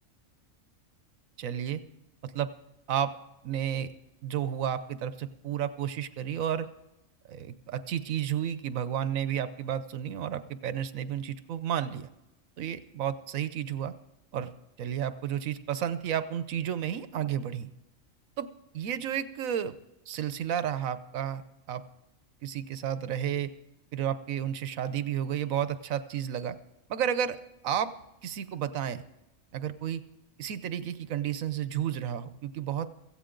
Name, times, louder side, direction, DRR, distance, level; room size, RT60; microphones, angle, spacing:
voice 1, 1.4-1.8 2.2-2.5 2.9-3.1 3.4-3.9 4.2-6.7 7.3-12.1 12.6-13.9 14.3-14.5 14.8-17.7 18.4-18.5 18.7-19.7 20.1-21.8 22.4-23.5 23.9-26.6 26.9-27.4 27.6-27.9 28.2-29.0 29.5-30.0 30.4-32.9, right 9 dB, 80° right, 13 dB, 1.2 m, -32 dB
16.5 x 15.0 x 3.8 m, 0.91 s
omnidirectional pair, 1.4 m